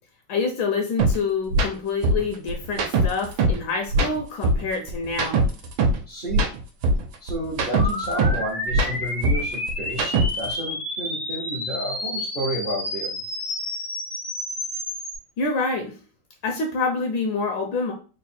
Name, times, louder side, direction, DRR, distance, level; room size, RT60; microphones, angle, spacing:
voice 1, 0.3-5.4 15.4-16.0 16.4-17.9, left 4 dB, 75° left, 3 dB, 1.4 m, -26 dB
sound 1, 1.0-1.1 1.5-1.7 2.0-3.6 3.9-6.0 6.3-8.4 8.7-10.5, right 2 dB, 80° right, 1.4 m, -21 dB
voice 2, 6.1-6.5 7.2-13.2, right 1 dB, 65° right, -3 dB, 0.5 m, -31 dB
sound 2, 7.7-15.2, left 1 dB, 35° left, 0.4 m, -30 dB
3.8 x 2.1 x 4.2 m, 0.37 s
omnidirectional pair, 2.2 m